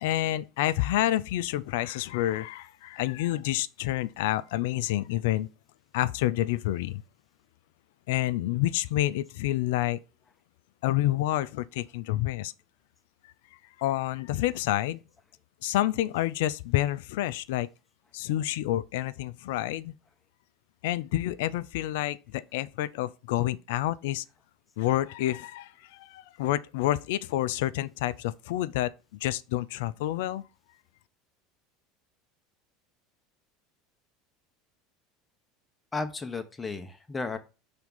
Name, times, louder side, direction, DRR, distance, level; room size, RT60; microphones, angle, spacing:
voice 1, 0.0-5.5 5.9-7.0 8.1-10.0 10.8-12.5 13.2-13.3 13.8-15.0 15.6-17.7 18.1-19.9 20.8-24.2 24.8-28.9 29.2-30.4, left 14 dB, 65° left, 0.3 m, -28 dB
voice 2, 35.9-37.4, left 3 dB, 20° left, 0.9 m, -34 dB
5.7 x 3.6 x 5.5 m
hypercardioid pair, 75°, 0 cm